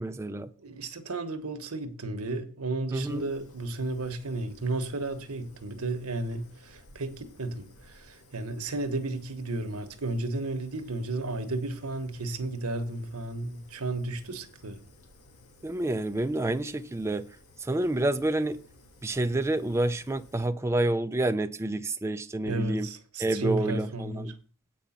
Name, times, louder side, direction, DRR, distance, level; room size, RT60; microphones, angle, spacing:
voice 1, 0.0-0.5 2.9-3.3 15.6-17.3 17.6-18.6 19.0-22.9 23.2-24.3, right 2 dB, 10° right, 0.4 m, -28 dB
voice 2, 0.6-14.8 22.4-24.3, right 2 dB, 85° right, 1.2 m, -33 dB
Fire, 3.0-20.5, left 2 dB, 85° left, 1.9 m, -56 dB
8.4 x 5.3 x 7.2 m
head